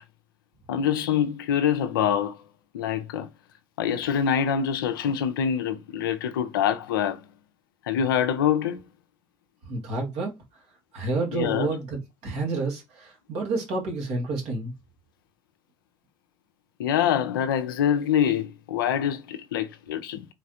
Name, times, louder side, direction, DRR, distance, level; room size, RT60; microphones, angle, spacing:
voice 1, 0.7-2.4 2.7-3.3 3.8-7.2 7.9-8.8 11.3-11.8 16.8-20.3, left 8 dB, 85° left, 0.4 m, -25 dB
voice 2, 9.7-10.4 10.9-14.7, right 3 dB, 70° right, 1.7 m, -29 dB
3.9 x 3.2 x 2.7 m
hypercardioid pair, 50°, 11 cm